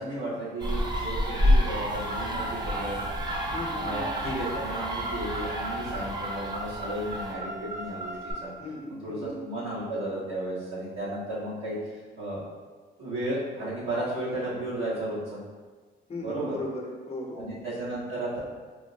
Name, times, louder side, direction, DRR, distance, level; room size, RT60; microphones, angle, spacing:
voice 1, 0.0-3.0 3.7-8.1 8.4-8.5 9.0-11.7 12.2-12.4 13.0-15.4 16.2-16.5 17.3-18.4, right 1 dB, 80° right, -9 dB, 1.4 m, -34 dB
sound 1, 0.6-7.3, equal, 20° right, 0.6 m, -29 dB
Car, 1.9-8.3, right 2 dB, 50° right, 1.3 m, -38 dB
voice 2, 3.5-4.0 8.6-9.4 16.1-17.5, left 1 dB, 30° left, 0 dB, 0.7 m, -37 dB
4.4 x 2.0 x 2.7 m, 1.4 s
cardioid pair, 90°, 20 cm